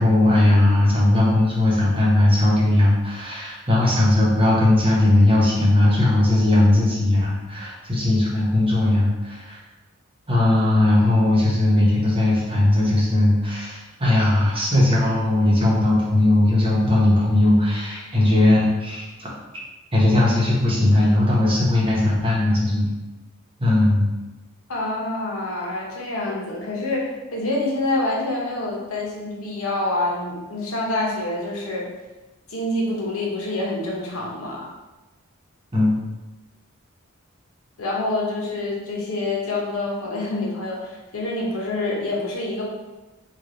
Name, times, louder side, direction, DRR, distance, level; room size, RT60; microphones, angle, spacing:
voice 1, 0.0-9.6 10.3-19.3 19.9-22.9 23.6-24.1 35.7-35.9, left 1 dB, 25° right, -6 dB, 0.9 m, -18 dB
voice 2, 24.7-31.9 32.5-34.7 37.8-42.6, left 2 dB, 80° left, -3 dB, 0.8 m, -26 dB
3.2 x 2.4 x 3.8 m, 1.1 s
head